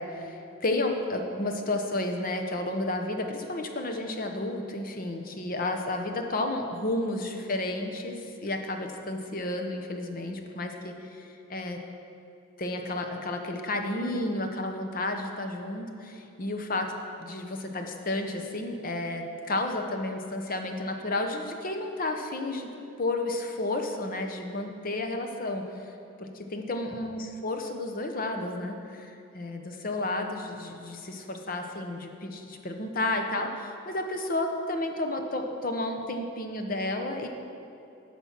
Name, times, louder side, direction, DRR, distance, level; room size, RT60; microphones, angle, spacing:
voice 1, 0.0-11.8 12.6-16.9 17.2-22.7 23.0-25.9 26.2-37.3, left 2 dB, 40° left, 4 dB, 0.8 m, -32 dB
12.5 x 4.4 x 5.9 m, 2.7 s
head